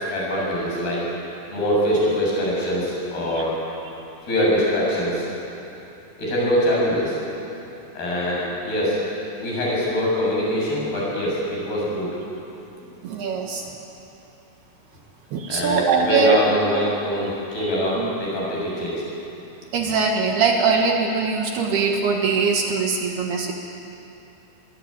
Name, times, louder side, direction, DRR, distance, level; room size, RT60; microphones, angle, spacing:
voice 1, 0.1-1.1 1.5-3.5 4.2-5.3 6.2-7.2 7.9-9.0 9.4-12.1 15.5-19.0, equal, 55° left, -4 dB, 9.3 m, -23 dB
voice 2, 13.0-13.7 15.3-16.4 18.0-18.1 19.7-23.5, right 5 dB, 65° right, 1 dB, 3.2 m, -21 dB
24.5 x 22.0 x 8.9 m, 2.9 s
omnidirectional pair, 5.5 m